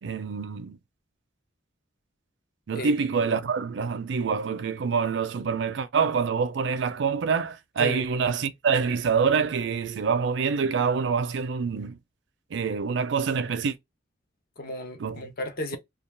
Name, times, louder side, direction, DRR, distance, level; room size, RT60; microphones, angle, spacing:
voice 1, 0.0-0.8 2.7-12.0 12.5-13.8 15.0-15.2, right 5 dB, 70° right, 0.4 m, -26 dB
voice 2, 14.6-15.8, left 1 dB, 55° left, 0.7 m, -34 dB
2.3 x 2.3 x 3.2 m
head